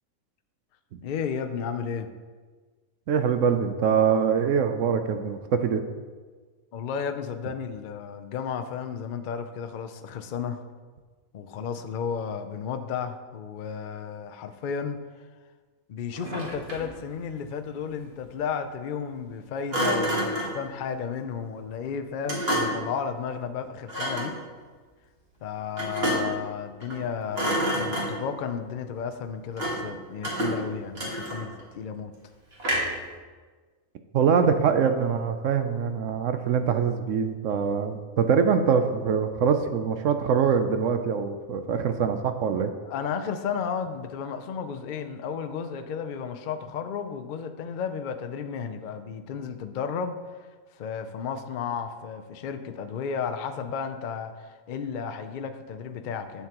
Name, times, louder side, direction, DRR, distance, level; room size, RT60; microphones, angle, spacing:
voice 1, 1.0-2.1 6.7-10.6 11.3-15.0 15.9-24.4 25.4-32.1 42.8-50.2 50.8-56.5, left 6 dB, 75° left, 7 dB, 0.4 m, -33 dB
voice 2, 3.1-5.8 34.1-42.7, right 6 dB, 65° right, 8 dB, 0.8 m, -24 dB
Thump thud, 16.1-17.0 19.7-20.6 22.3-22.9 23.9-24.4 25.8-26.4 26.8-27.1 27.3-28.3 29.6-29.9 30.2-31.6 32.6-33.1, equal, 45° right, 1.7 m, -28 dB
11.0 x 7.2 x 2.9 m, 1.4 s
omnidirectional pair, 1.6 m